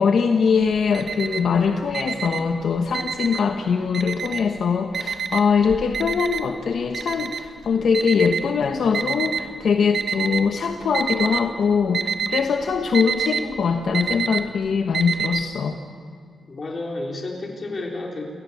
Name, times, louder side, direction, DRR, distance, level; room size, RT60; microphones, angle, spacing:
voice 1, 0.0-15.8, left 6 dB, 65° left, 4 dB, 1.2 m, -22 dB
Alarm, 0.6-1.6 1.9-3.6 3.9-4.6 4.9-9.4 9.9-10.6 10.8-11.5 11.7-15.4, right 6 dB, 65° right, 1.4 m, -27 dB
voice 2, 16.5-18.2, left 2 dB, 35° left, 0 dB, 4.1 m, -31 dB
29.0 x 17.0 x 8.3 m, 2.1 s
wide cardioid pair, 145°, 0 cm